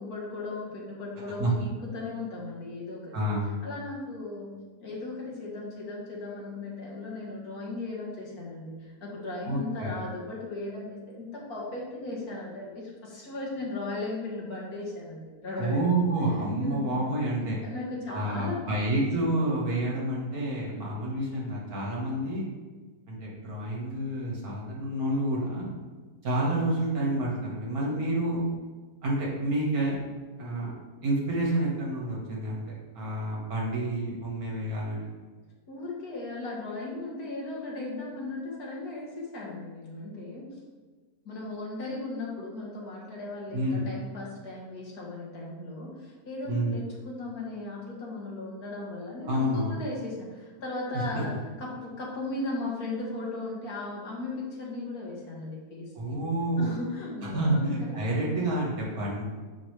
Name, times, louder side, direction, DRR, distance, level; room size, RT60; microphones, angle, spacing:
voice 1, 0.0-3.3 3.6-4.5 4.8-15.9 16.6-16.9 17.4-19.1 35.7-40.6 41.3-56.2 56.6-58.0, left 2 dB, 70° left, -4 dB, 2.0 m, -37 dB
voice 2, 3.1-3.5 9.4-9.9 15.6-17.6 18.1-22.4 23.1-25.7 26.2-28.4 29.0-30.0 30.4-30.7 31.0-35.1 43.5-43.9 46.5-46.8 49.2-49.8 50.9-51.2 55.9-56.7 57.2-59.2, right 1 dB, 65° right, -4 dB, 2.0 m, -29 dB
7.3 x 4.9 x 3.3 m, 1.4 s
omnidirectional pair, 1.7 m